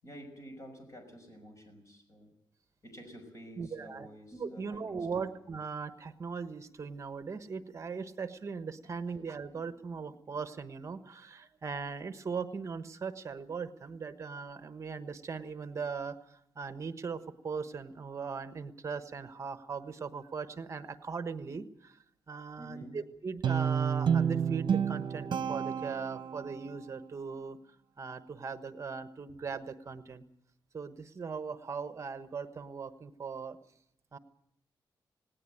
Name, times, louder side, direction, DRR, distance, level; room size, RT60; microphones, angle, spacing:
voice 1, 0.0-2.3 2.8-5.3 8.8-8.9 22.6-23.0, equal, 35° left, 5 dB, 5.9 m, -50 dB
voice 2, 3.6-22.0 22.3-27.6 28.0-30.2 30.7-33.6 34.1-34.2, right 5 dB, 35° right, 10 dB, 1.2 m, -39 dB
Guitar, 23.4-26.7, right 7 dB, 60° right, 0.9 m, -30 dB
18.5 x 18.5 x 9.1 m, 0.71 s
wide cardioid pair, 170°, 8 cm